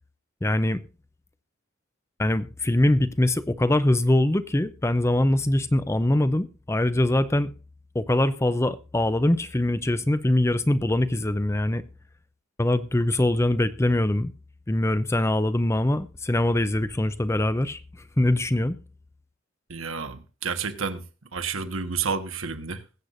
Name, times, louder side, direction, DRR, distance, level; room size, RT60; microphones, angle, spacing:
voice 1, 0.4-0.8 2.2-7.5 7.9-11.8 12.6-14.3 14.7-17.8 18.2-18.8, left 1 dB, 15° left, 0.5 m, -23 dB
voice 2, 19.7-21.0 21.3-22.8, right 5 dB, 80° right, 1.5 m, -30 dB
21.5 x 8.2 x 2.6 m
head